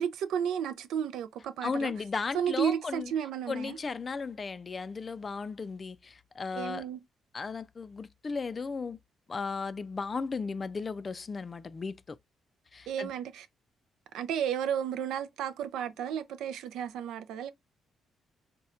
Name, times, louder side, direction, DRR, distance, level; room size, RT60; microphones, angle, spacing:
voice 1, 0.0-1.9 2.3-3.8 6.5-7.0 12.9-13.5 14.1-17.5, right 9 dB, 85° right, 0.4 m, -32 dB
voice 2, 1.6-3.1 3.5-6.8 7.3-9.0 9.3-12.2 12.7-13.1, left 4 dB, 35° left, 0.3 m, -35 dB
4.1 x 2.2 x 2.5 m
cardioid pair, 90°, 0 cm